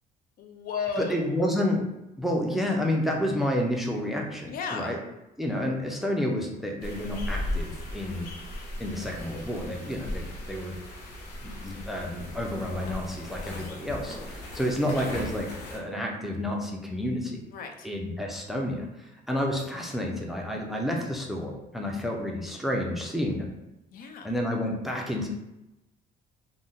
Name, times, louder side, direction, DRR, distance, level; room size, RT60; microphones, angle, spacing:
voice 1, 0.4-1.5 4.5-5.0 17.5-17.9 23.9-24.3, left 5 dB, 60° left, 4 dB, 0.4 m, -34 dB
voice 2, 1.0-1.8 2.2-5.0 5.4-8.3 8.8-10.8 11.4-17.5 17.8-23.5 24.2-25.3, left 1 dB, ahead, 0 dB, 0.4 m, -30 dB
sound 1, 6.8-15.8, left 1 dB, 90° left, 0.7 m, -37 dB
2.5 x 2.1 x 3.7 m, 0.91 s
cardioid pair, 110°, 17 cm